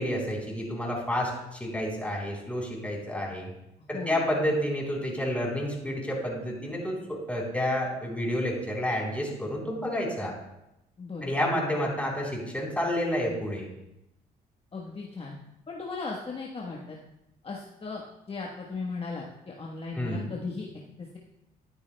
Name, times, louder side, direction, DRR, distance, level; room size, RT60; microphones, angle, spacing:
voice 1, 0.0-3.5 3.9-10.3 11.2-13.7 20.0-20.3, left 1 dB, 10° left, -3 dB, 3.7 m, -30 dB
voice 2, 3.9-4.3 11.0-11.3 14.7-15.3 15.7-17.0 17.4-18.0 18.3-20.7 21.0-21.2, left 4 dB, 35° left, -2 dB, 1.2 m, -37 dB
12.0 x 9.6 x 2.2 m, 0.88 s
supercardioid pair, 70°, 17 cm